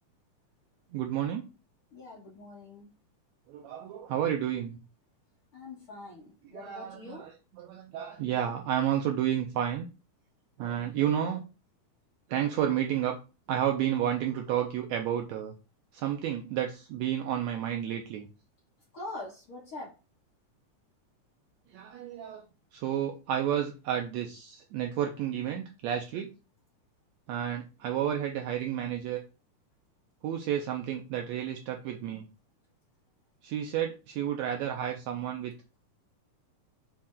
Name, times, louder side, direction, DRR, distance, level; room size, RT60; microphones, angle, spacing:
voice 1, 0.9-1.5 3.5-4.8 6.5-7.3 7.6-9.9 10.6-11.4 12.3-13.1 13.5-15.5 15.9-18.3 21.7-22.4 22.7-26.3 27.3-29.2 30.2-32.3 33.4-35.5, right 10 dB, 85° right, 3 dB, 1.5 m, -31 dB
voice 2, 1.9-2.9 5.5-7.3 18.9-20.0, left 2 dB, 55° left, -7 dB, 1.0 m, -43 dB
5.9 x 2.1 x 3.6 m, 0.31 s
omnidirectional pair, 3.6 m